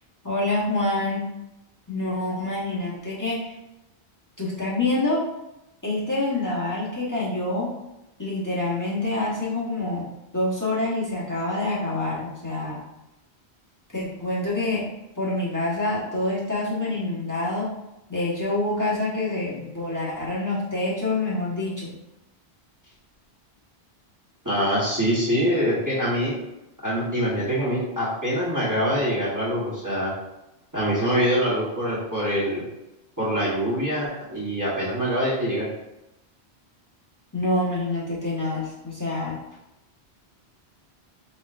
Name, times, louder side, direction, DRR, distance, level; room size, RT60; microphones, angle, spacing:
voice 1, 0.2-1.2 1.9-3.6 4.4-5.2 5.8-7.7 8.2-10.1 10.3-12.8 13.9-14.8 15.2-17.7 18.1-21.9 37.3-39.4, left 2 dB, 15° left, -8 dB, 1.2 m, -26 dB
voice 2, 24.4-26.4 26.8-30.1 30.7-32.6 33.2-35.7, equal, 15° right, -8 dB, 1.3 m, -24 dB
4.6 x 4.3 x 2.5 m, 0.93 s
omnidirectional pair, 1.1 m